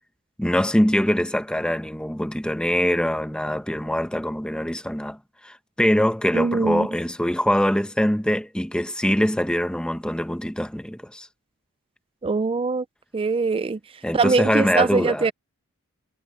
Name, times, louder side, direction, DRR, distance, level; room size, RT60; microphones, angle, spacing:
voice 1, 0.4-5.2 5.4-11.3 14.0-15.3, equal, 5° left, 0.9 m, -23 dB
voice 2, 6.3-6.9 12.2-12.8 13.1-13.8 14.1-15.3, right 4 dB, 25° right, 0.4 m, -22 dB
head